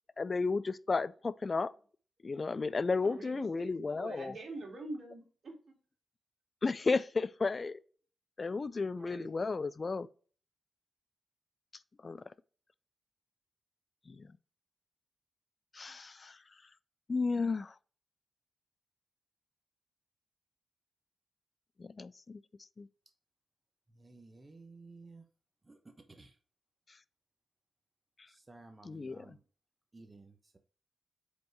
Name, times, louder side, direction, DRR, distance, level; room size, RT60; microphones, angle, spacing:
voice 1, 0.2-1.7 2.2-4.3 6.6-7.8 8.4-10.1 12.0-12.2 14.1-14.3 15.7-16.4 17.1-17.7 21.8-22.4 22.8-22.9 28.8-29.3, left 4 dB, 45° left, 0.4 m, -33 dB
voice 2, 2.9-5.7 9.0-9.3, right 2 dB, 55° right, 2.4 m, -45 dB
voice 3, 24.0-25.2 25.7-25.8 26.1-26.3 28.3-29.4 29.9-30.6, right 3 dB, 30° right, 1.0 m, -55 dB
5.2 x 4.6 x 4.6 m
supercardioid pair, 45°, 0 cm